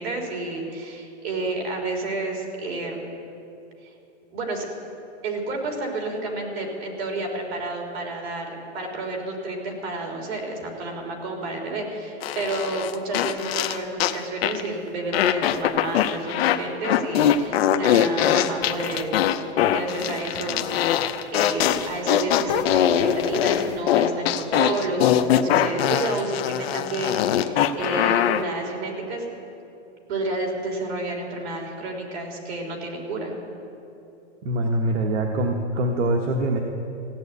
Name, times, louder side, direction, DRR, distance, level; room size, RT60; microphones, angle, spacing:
voice 1, 0.0-3.0 4.3-4.7 5.2-19.1 19.4-29.3 30.1-33.3, right 2 dB, 60° right, 1 dB, 3.5 m, -30 dB
sound 1, 12.2-14.2 14.4-14.7 15.1-16.6 16.8-28.4, left 10 dB, 55° left, 0.8 m, -22 dB
voice 2, 34.4-36.6, right 1 dB, 75° right, 2 dB, 1.4 m, -23 dB
15.5 x 9.4 x 8.2 m, 2.7 s
hypercardioid pair, 155°, 36 cm